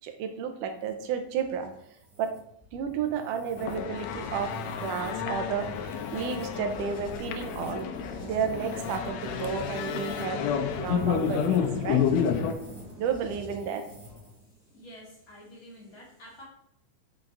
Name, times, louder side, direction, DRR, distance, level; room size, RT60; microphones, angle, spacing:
voice 1, 0.0-1.7 2.2-2.3 2.7-4.5 4.8-7.9 8.2-10.4 10.8-12.0 13.0-13.8, right 7 dB, 85° right, 6 dB, 2.3 m, -32 dB
sound 1, 0.6-14.5, equal, 10° left, 2.9 m, -49 dB
sound 2, 3.6-12.5, left 8 dB, 75° left, 1.7 m, -30 dB
sound 3, 7.3-14.8, equal, 50° right, 2.7 m, -44 dB
voice 2, 14.7-16.4, equal, 30° left, -6 dB, 2.6 m, -49 dB
6.2 x 6.0 x 3.9 m, 0.71 s
omnidirectional pair, 3.6 m